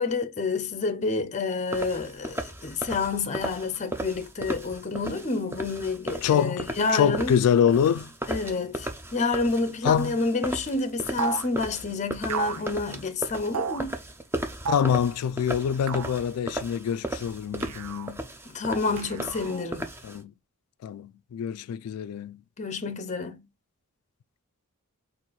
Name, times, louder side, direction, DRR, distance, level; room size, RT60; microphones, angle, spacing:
voice 1, 0.0-7.4 8.3-14.0 18.5-19.9 22.6-23.4, left 3 dB, 35° left, 0.6 m, -29 dB
sound 1, 1.7-20.2, right 1 dB, 10° right, 0.5 m, -36 dB
voice 2, 6.2-8.1 9.8-10.2 14.7-18.2 20.0-20.3 20.8-22.4, left 8 dB, 80° left, 0.3 m, -25 dB
sound 2, 11.2-11.5 12.3-12.7 13.5-13.8 14.6-15.0 15.9-16.2 17.6-18.1 19.0-19.7, right 6 dB, 75° right, 0.4 m, -32 dB
4.2 x 2.5 x 4.4 m
head